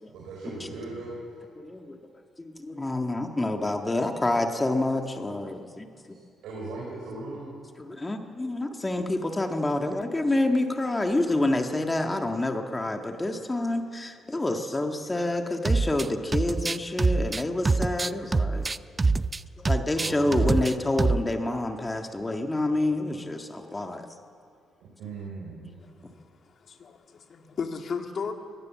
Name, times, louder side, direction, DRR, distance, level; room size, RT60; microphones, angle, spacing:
voice 1, 0.1-1.4 6.1-7.5 20.0-20.7 25.0-25.7, right 3 dB, 85° right, 4.9 m, -38 dB
voice 2, 1.6-2.0 2.4-6.2 7.8-18.8 19.6-24.1, left 2 dB, 20° left, 1.7 m, -28 dB
sound 1, 15.7-16.1 16.3-19.4 19.7-20.7 21.0-21.3, right 3 dB, 25° right, 0.5 m, -24 dB
voice 3, 25.9-28.3, left 5 dB, 50° left, 2.2 m, -36 dB
22.5 x 18.0 x 7.4 m
cardioid pair, 90°, 0 cm